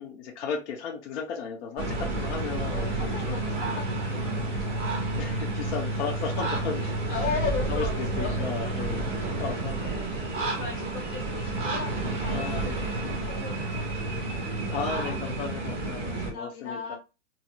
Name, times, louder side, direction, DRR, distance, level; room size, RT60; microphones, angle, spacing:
voice 1, 0.0-3.6 5.2-7.4 7.7-9.8 10.1-10.7 12.3-12.8 14.7-17.0, left 6 dB, 65° left, 2 dB, 0.8 m, -35 dB
sound 1, 1.8-16.3, right 2 dB, 15° right, 1.4 m, -30 dB
voice 2, 2.7-5.3 5.7-6.2 7.1-8.7 9.4-15.2 16.2-17.0, left 5 dB, 40° left, -1 dB, 1.8 m, -38 dB
4.1 x 2.8 x 2.3 m, 0.28 s
hypercardioid pair, 125°, 37 cm